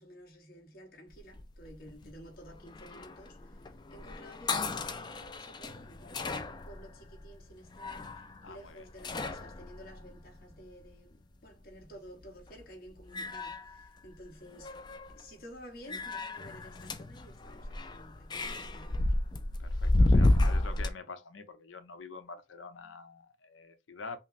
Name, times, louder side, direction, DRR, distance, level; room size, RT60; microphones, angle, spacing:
voice 1, 0.0-8.1 8.4-14.8 15.1-19.2, equal, 50° left, 1.2 m, -52 dB
sound 1, 1.1-10.9 12.2-12.6 13.0-14.3 14.5-15.2 15.9-20.9, left 2 dB, 20° left, 0.3 m, -32 dB
voice 2, 8.4-8.9 19.6-24.2, left 4 dB, 85° left, 0.7 m, -46 dB
5.4 x 2.0 x 2.5 m
head